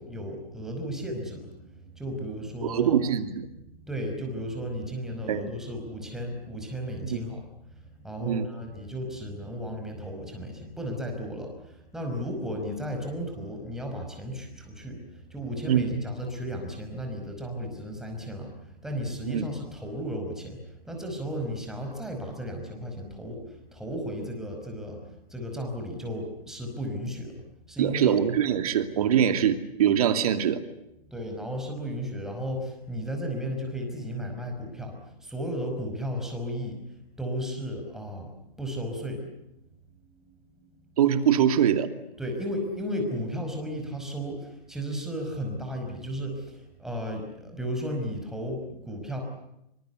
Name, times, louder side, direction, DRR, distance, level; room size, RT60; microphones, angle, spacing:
voice 1, 0.0-3.0 3.7-28.1 31.1-36.8 37.2-38.3 38.6-39.3 40.1-40.2 42.2-49.2, equal, ahead, 2 dB, 5.3 m, -34 dB
voice 2, 2.6-3.5 5.3-5.5 7.0-7.3 8.2-8.5 15.7-15.9 19.3-19.5 27.8-30.6 41.0-41.9, right 9 dB, 40° right, 9 dB, 2.6 m, -23 dB
27.0 x 25.0 x 8.2 m, 0.84 s
hypercardioid pair, 150°, 29 cm